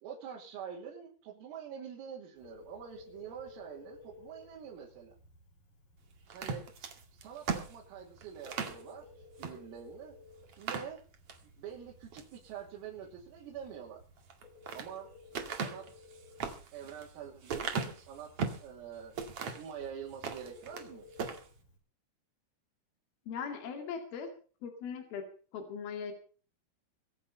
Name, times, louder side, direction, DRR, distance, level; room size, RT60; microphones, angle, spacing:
voice 1, 0.0-5.2 6.3-6.7 7.1-9.1 9.4-10.2 10.6-11.0 11.6-14.0 14.7-15.1 15.4-16.1 16.7-21.1, right 8 dB, 85° right, -3 dB, 5.5 m, -46 dB
Telephone, 2.4-21.8, left 3 dB, 40° left, 7.9 m, -58 dB
sound 1, 6.3-8.8 9.4-9.6 9.9-10.0 10.5-11.4 11.9-12.4 14.2-14.9 15.3-18.7 19.2-19.7 20.1-20.9 21.1-21.4, right 5 dB, 55° right, 1.7 m, -38 dB
voice 2, 23.3-24.3 24.6-25.2 25.5-26.1, left 6 dB, 55° left, 4 dB, 3.7 m, -39 dB
24.0 x 8.6 x 5.5 m, 0.41 s
omnidirectional pair, 5.9 m